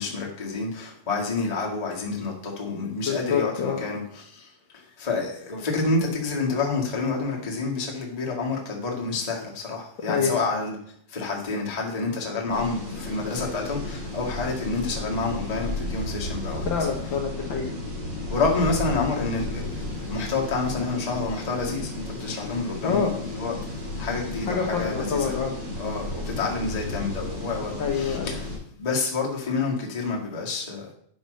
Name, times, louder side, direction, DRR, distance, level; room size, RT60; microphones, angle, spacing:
voice 1, 0.0-4.5 4.7-10.8 11.1-16.7 18.3-23.5 24.0-25.3 25.8-28.5 28.8-30.9, left 3 dB, 15° left, -2 dB, 1.5 m, -28 dB
voice 2, 3.1-3.8 10.1-10.4 16.6-17.7 22.8-23.1 24.5-25.5 27.8-28.4, left 6 dB, 55° left, 1 dB, 1.4 m, -26 dB
sound 1, 12.5-28.6, left 1 dB, 45° right, 4.1 m, -33 dB
8.9 x 5.4 x 6.5 m, 0.64 s
omnidirectional pair, 3.5 m